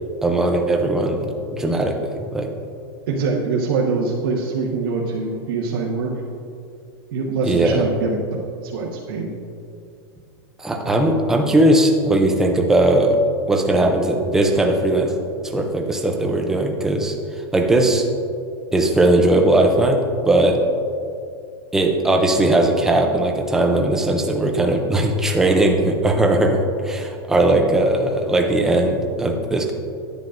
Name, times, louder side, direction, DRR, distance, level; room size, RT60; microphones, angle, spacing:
voice 1, 0.2-2.5 7.4-7.8 10.6-13.2 13.5-15.1 15.4-17.2 17.5-18.1 18.7-20.6 21.7-29.7, right 1 dB, 5° right, 2 dB, 0.4 m, -18 dB
voice 2, 3.1-6.2 7.1-9.3, right 4 dB, 65° right, -6 dB, 1.2 m, -24 dB
10.5 x 9.4 x 2.5 m, 2.5 s
supercardioid pair, 180°, 13 cm